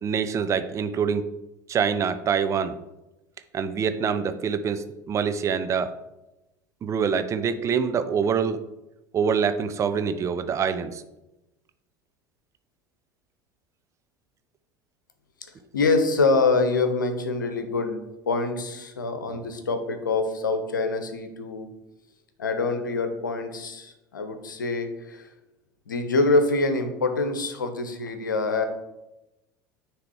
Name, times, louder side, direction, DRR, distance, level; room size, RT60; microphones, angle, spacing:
voice 1, 0.0-1.3 1.7-2.8 3.5-5.9 6.8-8.6 9.1-11.0, right 6 dB, 30° right, 11 dB, 0.6 m, -25 dB
voice 2, 15.7-18.0 18.3-21.7 22.4-25.3 25.9-28.6, left 3 dB, 75° left, 8 dB, 0.9 m, -25 dB
9.4 x 3.4 x 4.6 m, 0.96 s
figure-of-eight pair, 70°, 11 cm